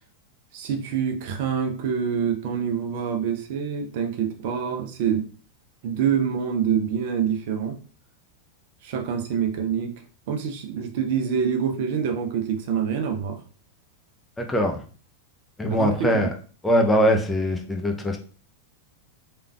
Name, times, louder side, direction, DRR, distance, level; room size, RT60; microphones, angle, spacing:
voice 1, 0.5-5.2 5.8-7.8 8.8-9.9 10.3-13.4 15.7-16.3, right 7 dB, 50° right, 4 dB, 0.7 m, -26 dB
voice 2, 14.4-14.8 15.6-16.3 16.6-18.2, equal, 10° left, 2 dB, 0.5 m, -22 dB
3.3 x 3.2 x 2.3 m, 0.40 s
figure-of-eight pair, 90°, 0 cm